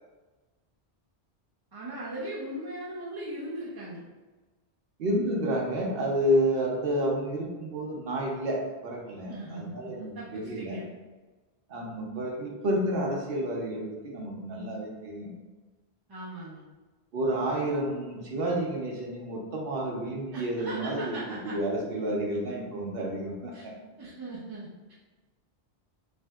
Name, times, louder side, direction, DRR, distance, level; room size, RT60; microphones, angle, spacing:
voice 1, 1.7-4.0 9.3-10.9 16.1-16.6 20.3-21.6 23.5-23.7 24.0-24.9, right 1 dB, 35° right, -7 dB, 0.4 m, -39 dB
voice 2, 5.0-10.8 11.7-15.3 17.1-23.7, right 1 dB, 70° right, -1 dB, 0.9 m, -30 dB
3.3 x 2.6 x 2.2 m, 1.2 s
omnidirectional pair, 1.0 m